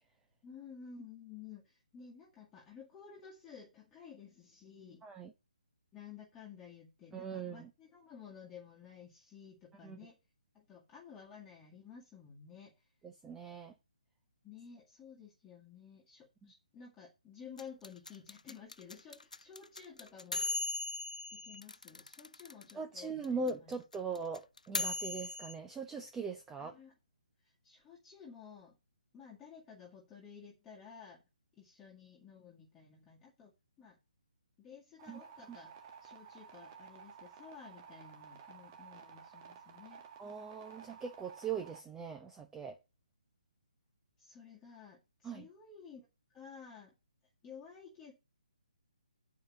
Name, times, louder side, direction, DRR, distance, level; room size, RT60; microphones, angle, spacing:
voice 1, 0.4-5.1 5.9-10.2 10.5-12.9 14.4-20.4 21.3-23.8 26.6-26.9 27.4-28.8 29.1-31.2 31.6-33.5 33.8-34.0 34.6-35.7 36.0-40.0 44.2-46.0 46.3-46.9 47.4-48.1, left 6 dB, 10° left, 2.0 m, -53 dB
voice 2, 7.1-7.7 9.8-10.0 13.0-13.7 16.4-16.5 22.7-26.8 35.1-35.2 40.2-42.8 45.2-45.5, right 5 dB, 10° right, 0.8 m, -40 dB
sound 1, 17.6-22.7 23.0-23.1 23.2-25.5, left 3 dB, 75° left, 0.5 m, -38 dB
sound 2, 35.0-41.8, right 7 dB, 30° right, 1.7 m, -54 dB
9.2 x 5.0 x 7.2 m
figure-of-eight pair, 140°, 4 cm